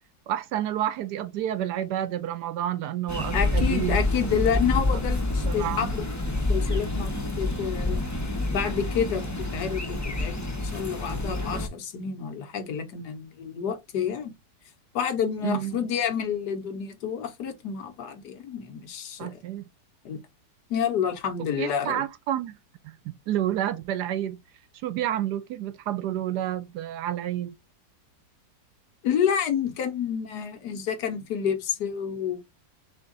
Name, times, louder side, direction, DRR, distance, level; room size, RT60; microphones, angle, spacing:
voice 1, 0.3-4.3 4.9-5.0 5.4-5.9 15.4-15.9 19.2-19.7 21.6-22.5 22.8-24.4 24.8-27.5, right 12 dB, 75° right, 1.1 m, -30 dB
sound 1, 3.1-11.7, left 2 dB, 20° left, 0.4 m, -28 dB
voice 2, 3.3-6.0 6.5-8.0 8.5-14.3 14.9-19.4 20.0-20.2 20.7-22.0 29.0-32.4, left 8 dB, 70° left, 1.4 m, -29 dB
3.5 x 3.3 x 3.8 m
omnidirectional pair, 1.9 m